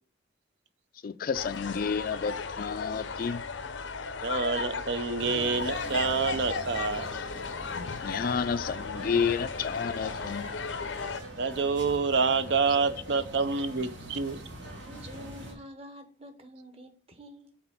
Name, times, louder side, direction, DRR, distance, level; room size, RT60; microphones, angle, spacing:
voice 1, 1.0-3.4 7.7-10.5, left 6 dB, 50° left, 0.3 m, -31 dB
sound 1, 1.3-11.2, left 5 dB, 85° left, 0.6 m, -36 dB
voice 2, 4.2-7.1 11.4-14.4, right 4 dB, 65° right, 0.5 m, -27 dB
sound 2, 5.2-15.5, right 1 dB, 80° right, 2.3 m, -43 dB
voice 3, 14.8-17.6, equal, 35° right, 1.1 m, -48 dB
5.9 x 4.3 x 5.8 m
head